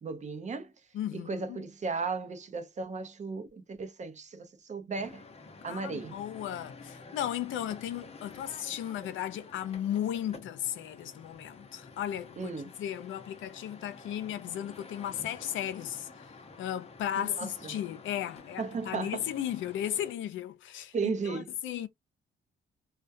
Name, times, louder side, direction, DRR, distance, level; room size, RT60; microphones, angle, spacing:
voice 1, 0.0-0.7 1.1-5.2 5.6-6.2 12.4-12.7 17.2-17.8 18.6-19.3 20.9-21.5, right 4 dB, 35° right, 0.6 m, -35 dB
voice 2, 0.9-1.7 5.7-16.3 16.6-21.9, left 11 dB, 75° left, 0.5 m, -35 dB
sound 1, 4.9-20.1, left 3 dB, 30° left, 0.7 m, -50 dB
2.3 x 2.1 x 2.5 m
cardioid pair, 90°, 20 cm